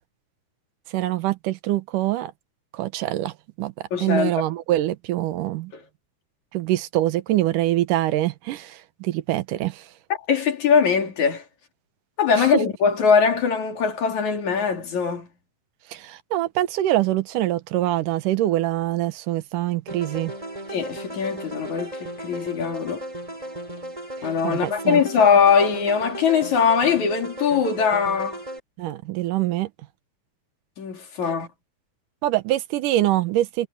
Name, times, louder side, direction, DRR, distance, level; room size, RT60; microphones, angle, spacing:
voice 1, 0.9-2.3 2.7-3.3 3.6-3.7 4.0-5.7 6.5-9.8 12.4-12.5 15.9-20.3 24.4-25.0 28.8-29.7 32.2-33.7, right 14 dB, 85° right, 2.5 m, -24 dB
voice 2, 3.9-4.4 10.3-11.4 12.2-15.3 20.7-23.0 24.2-28.4 30.8-31.5, left 6 dB, 65° left, 4.2 m, -21 dB
sound 1, 19.9-28.6, right 1 dB, 10° right, 5.0 m, -36 dB
omnidirectional pair, 3.7 m